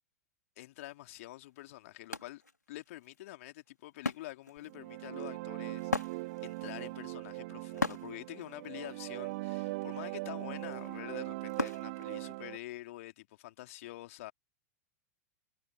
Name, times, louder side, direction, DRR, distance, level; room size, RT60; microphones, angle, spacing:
voice 1, 0.6-2.4 2.7-14.3, left 17 dB, 55° left, 2.6 m, -47 dB
Wood, 1.0-1.1 1.5-12.8, left 2 dB, 90° left, 2.8 m, -41 dB
sound 1, 4.7-12.6, right 23 dB, 50° right, 2.7 m, -40 dB
figure-of-eight pair, 95°, 9 cm